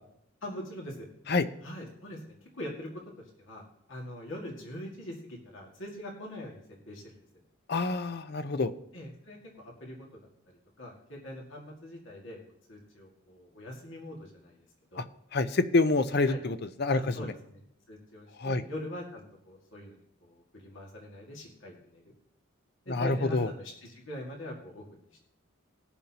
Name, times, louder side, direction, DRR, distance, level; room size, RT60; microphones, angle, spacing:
voice 1, 0.4-1.1 1.6-2.2 2.6-3.0 3.4-3.6 3.9-7.1 8.9-10.1 10.5-12.4 12.7-14.6 14.9-15.0 16.3-16.4 16.9-17.6 17.9-22.0 22.9-25.0, left 1 dB, 65° left, -1 dB, 2.0 m, -43 dB
voice 2, 7.7-8.7 15.0-15.1 15.3-17.2 18.4-18.6 22.9-23.5, left 3 dB, 50° left, 12 dB, 0.6 m, -27 dB
20.0 x 7.1 x 2.9 m, 0.75 s
head